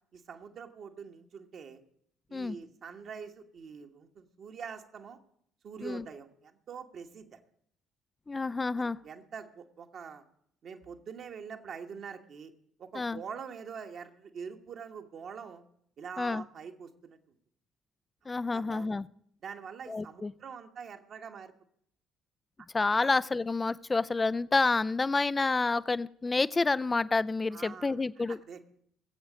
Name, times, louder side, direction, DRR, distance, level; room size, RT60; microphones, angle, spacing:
voice 1, 0.1-1.8 2.3-5.2 5.6-7.4 8.8-10.2 10.6-12.5 12.8-15.6 16.0-17.2 18.5-18.9 19.4-21.5 23.0-23.1 27.5-27.9 28.3-28.7, right 6 dB, 45° right, 5 dB, 1.3 m, -44 dB
voice 2, 8.3-9.0 12.9-13.2 16.2-16.4 18.3-19.1 19.9-20.3 22.7-28.4, left 3 dB, 20° left, 19 dB, 0.4 m, -29 dB
20.0 x 8.2 x 5.0 m, 0.68 s
figure-of-eight pair, 50°, 0 cm